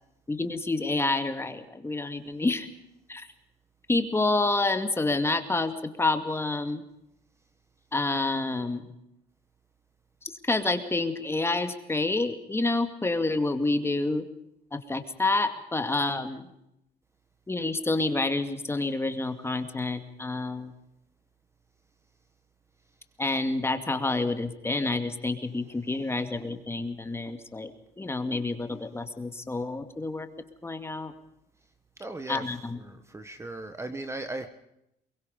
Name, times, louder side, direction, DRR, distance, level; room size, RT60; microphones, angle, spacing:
voice 1, 0.3-2.7 3.1-3.3 3.9-6.8 7.9-8.8 10.2-14.2 14.7-16.5 17.5-20.7 23.2-30.3 30.6-31.1 32.3-32.8, left 2 dB, 15° left, 7 dB, 2.3 m, -28 dB
voice 2, 32.0-32.4 32.8-34.5, right 2 dB, 15° right, 9 dB, 1.4 m, -37 dB
23.0 x 22.5 x 5.3 m, 0.81 s
cardioid pair, 110°, 17 cm